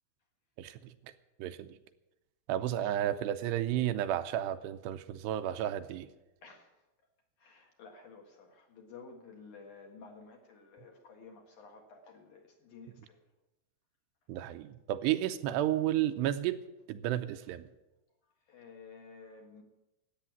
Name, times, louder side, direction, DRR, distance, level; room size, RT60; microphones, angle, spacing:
voice 1, 0.6-0.9 1.4-1.8 2.5-6.1 14.3-16.6 16.9-17.7, right 12 dB, 85° right, 10 dB, 2.8 m, -32 dB
voice 2, 2.6-3.0 6.4-6.8 7.4-13.2 14.5-14.6 18.2-19.6, left 4 dB, 55° left, 2 dB, 2.7 m, -53 dB
14.0 x 9.2 x 9.3 m, 0.96 s
omnidirectional pair, 4.9 m